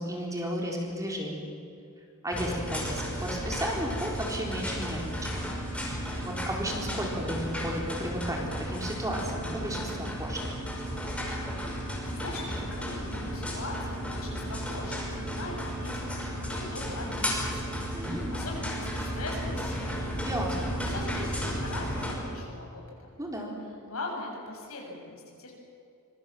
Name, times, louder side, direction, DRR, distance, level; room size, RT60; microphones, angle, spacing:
voice 1, 0.0-1.5 2.2-5.4 6.2-10.4 17.9-18.4 20.2-20.7 23.2-23.6, equal, 15° right, 0 dB, 4.2 m, -34 dB
sound 1, 2.3-22.1, equal, 5° left, 5.5 m, -34 dB
voice 2, 11.7-20.1 20.8-23.2 23.8-25.5, left 2 dB, 70° left, 0 dB, 7.6 m, -41 dB
25.5 x 23.0 x 7.6 m, 2.5 s
head